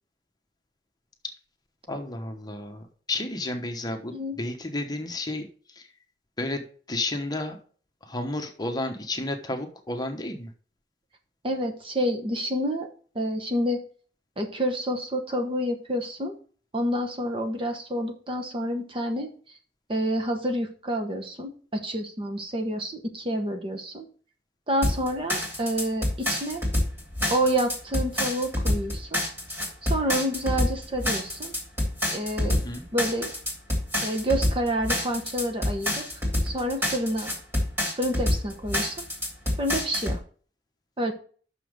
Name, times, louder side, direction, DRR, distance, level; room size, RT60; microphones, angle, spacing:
voice 1, 1.9-5.5 5.8-5.9 6.4-7.6 8.0-10.5 32.5-32.8, left 2 dB, 25° left, 4 dB, 1.1 m, -32 dB
voice 2, 11.4-12.9 13.1-13.8 14.4-16.3 16.7-19.3 19.9-24.1 24.7-26.6 27.3-29.2 29.8-31.5 32.1-32.6 32.9-33.3 34.0-36.0 36.4-37.3 37.9-39.0 39.6-40.2 41.0-41.1, equal, 30° right, 3 dB, 1.1 m, -28 dB
sound 1, 24.8-40.2, left 1 dB, 15° right, 2.9 m, -27 dB
6.3 x 5.8 x 6.5 m, 0.43 s
head